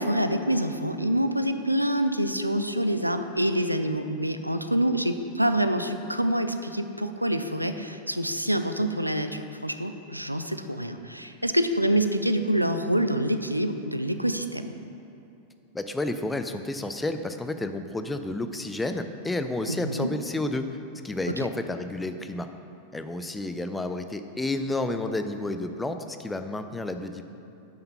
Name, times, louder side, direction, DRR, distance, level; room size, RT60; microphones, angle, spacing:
voice 1, 0.0-14.7 19.7-20.1, right 1 dB, 90° right, 8 dB, 0.4 m, -26 dB
voice 2, 15.7-20.7 21.0-22.5 22.9-27.2, left 2 dB, 10° left, 8 dB, 0.5 m, -31 dB
9.0 x 5.7 x 5.6 m, 2.8 s
figure-of-eight pair, 90°, 0 cm